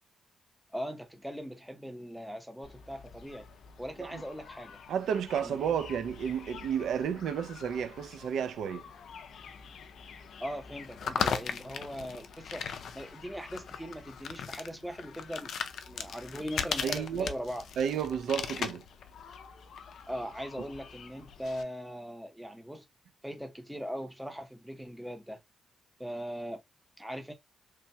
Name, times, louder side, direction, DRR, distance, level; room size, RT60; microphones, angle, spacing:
voice 1, 0.7-3.5 3.8-4.8 5.4-5.8 10.4-12.7 12.9-15.5 15.9-17.7 20.1-22.8 23.2-25.4 26.0-26.6 27.0-27.3, equal, ahead, 0.7 m, -40 dB
sound 1, 2.6-21.6, left 7 dB, 65° left, 0.4 m, -40 dB
voice 2, 4.9-8.8 16.8-17.3 17.8-18.8, right 8 dB, 80° right, 0.4 m, -32 dB
3.1 x 2.2 x 2.6 m
wide cardioid pair, 155°, 0 cm